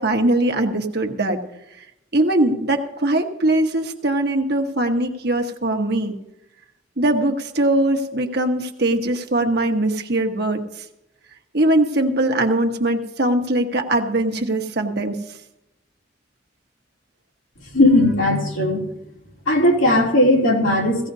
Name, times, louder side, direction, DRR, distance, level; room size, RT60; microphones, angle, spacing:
voice 1, 0.0-1.4 1.8-1.9 2.1-6.1 7.0-10.8 11.5-15.2, right 1 dB, 55° right, 5 dB, 1.3 m, -21 dB
voice 2, 17.7-18.8 19.5-21.1, left 1 dB, 90° left, -2 dB, 3.0 m, -17 dB
18.0 x 16.0 x 2.8 m, 0.88 s
head